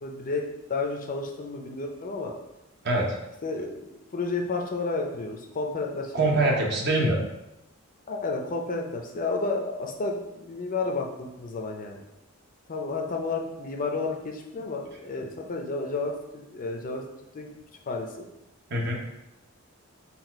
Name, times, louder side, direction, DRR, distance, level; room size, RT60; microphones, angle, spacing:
voice 1, 0.0-2.4 3.4-6.5 8.1-12.0 12.7-17.0 17.3-17.5 17.9-18.3 18.8-18.9, left 3 dB, 40° left, 2 dB, 0.5 m, -31 dB
voice 2, 2.8-3.2 6.1-7.2 18.7-18.9, right 2 dB, 50° right, -1 dB, 0.8 m, -23 dB
4.1 x 2.3 x 4.4 m, 0.90 s
head